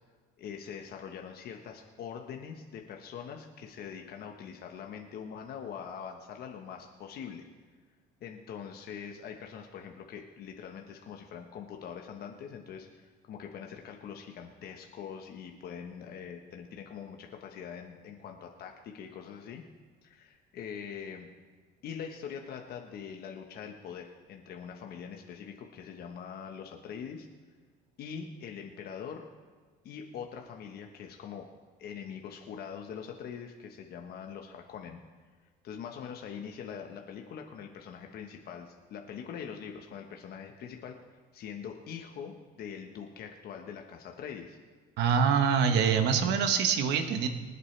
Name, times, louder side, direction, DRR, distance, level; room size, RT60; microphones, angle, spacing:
voice 1, 0.4-7.5 8.2-19.6 20.0-21.3 21.8-27.3 28.0-29.3 29.8-31.5 31.8-35.0 35.6-41.0 41.3-44.6, left 7 dB, 65° left, 3 dB, 1.2 m, -43 dB
voice 2, 45.0-47.3, right 6 dB, 85° right, 7 dB, 1.1 m, -25 dB
24.5 x 8.2 x 3.3 m, 1.5 s
cardioid pair, 110°, 17 cm